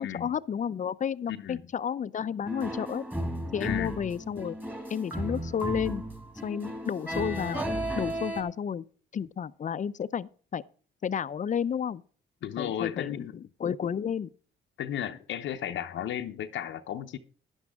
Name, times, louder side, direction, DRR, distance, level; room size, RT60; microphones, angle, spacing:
voice 1, 0.0-3.0 3.5-4.6 4.9-6.0 6.4-7.7 7.9-8.8 9.1-10.6 11.0-12.0 12.6-14.3, left 8 dB, 40° left, 0.6 m, -31 dB
voice 2, 1.3-1.6 3.6-3.9 12.4-13.3 14.8-17.2, left 10 dB, 70° left, 0.8 m, -34 dB
sound 1, 2.5-8.4, right 1 dB, 10° right, 2.3 m, -34 dB
12.0 x 10.5 x 3.6 m
cardioid pair, 90°, 20 cm